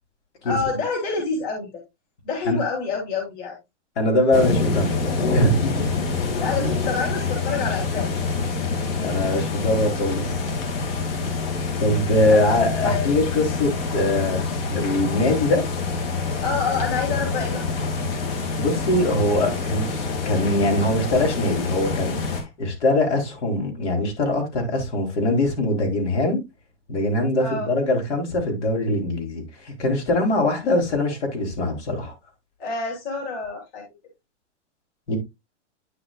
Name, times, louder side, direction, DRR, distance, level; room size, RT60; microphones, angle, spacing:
voice 1, 0.4-1.8 2.2-3.6 6.4-8.1 12.2-13.2 16.4-17.7 27.4-27.7 32.6-33.9, left 4 dB, 30° left, 3.1 m, -27 dB
voice 2, 4.0-5.7 9.0-10.2 11.8-14.5 14.7-15.6 18.6-26.4 26.9-32.1 35.1-35.2, left 1 dB, 70° left, 4.0 m, -22 dB
sound 1, 4.3-22.4, left 4 dB, 55° left, 2.6 m, -26 dB
10.0 x 5.8 x 2.5 m
supercardioid pair, 175°, 36 cm